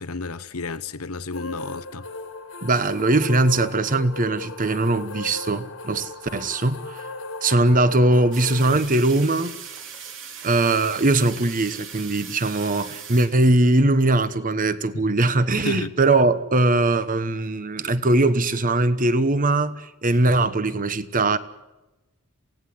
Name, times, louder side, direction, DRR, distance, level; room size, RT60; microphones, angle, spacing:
voice 1, 0.0-2.0 14.9-15.2 15.5-15.9, left 4 dB, 85° left, 1.1 m, -31 dB
sound 1, 1.3-8.8, left 3 dB, 65° left, 2.2 m, -37 dB
voice 2, 2.6-7.0 7.4-9.6 10.4-21.4, right 2 dB, 40° right, 1.1 m, -21 dB
sound 2, 8.3-13.8, right 7 dB, 60° right, 2.7 m, -39 dB
27.5 x 17.5 x 7.9 m
head